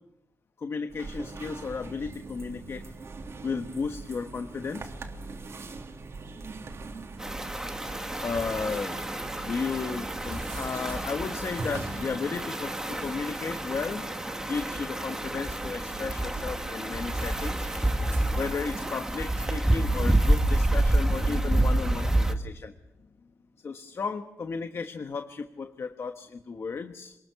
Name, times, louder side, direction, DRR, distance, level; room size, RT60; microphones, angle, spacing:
voice 1, 0.6-2.9 3.4-4.9 8.2-9.0 9.4-14.1 14.4-17.7 18.4-22.7 23.6-27.1, left 5 dB, 50° left, 7 dB, 1.3 m, -34 dB
sound 1, 0.9-20.8, right 3 dB, 55° right, 3.4 m, -42 dB
sound 2, 7.2-22.3, right 1 dB, 10° right, 1.7 m, -28 dB
27.0 x 20.5 x 7.0 m, 0.90 s
wide cardioid pair, 120°, 6 cm